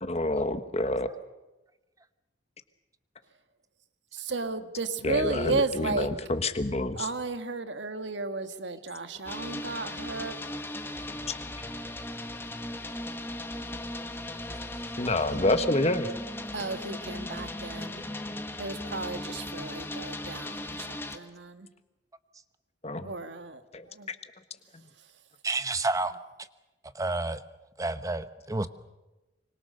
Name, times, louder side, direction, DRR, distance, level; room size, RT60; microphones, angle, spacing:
voice 1, 0.0-1.1 5.0-7.0 15.0-16.1 17.8-18.0 18.3-18.4 22.8-23.1 23.7-24.2, left 2 dB, 35° left, 9 dB, 1.4 m, -28 dB
voice 2, 4.1-6.1 7.0-10.4 16.5-18.1 18.6-21.7 23.0-24.1 25.0-25.1, right 3 dB, 85° right, 9 dB, 1.6 m, -34 dB
sound 1, 9.3-21.2, left 1 dB, 15° left, 1.5 m, -37 dB
voice 3, 25.4-26.1 26.9-27.4 27.8-28.7, right 2 dB, 20° right, 12 dB, 0.9 m, -29 dB
25.5 x 25.0 x 6.6 m, 1.1 s
head